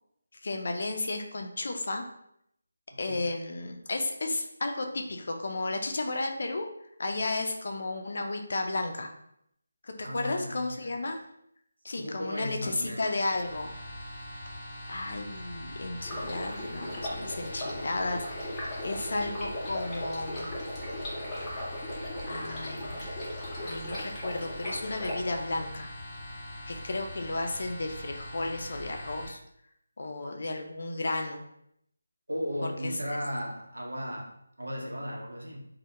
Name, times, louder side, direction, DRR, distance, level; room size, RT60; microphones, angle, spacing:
voice 1, 0.4-2.0 3.0-6.7 7.0-9.1 9.8-11.2 11.8-13.7 14.9-20.5 22.2-23.0 23.6-25.9 26.7-29.4 30.0-31.4 32.6-33.2, left 2 dB, 60° left, 3 dB, 0.4 m, -33 dB
voice 2, 2.9-3.2 10.0-11.0 12.0-13.2 32.3-35.7, equal, 85° right, -1 dB, 0.6 m, -36 dB
sound 1, 13.2-29.3, left 1 dB, 30° left, 1.0 m, -42 dB
Stream, 16.0-25.1, left 1 dB, 15° left, 0.6 m, -38 dB
2.1 x 2.1 x 2.8 m, 0.74 s
figure-of-eight pair, 160°, 0 cm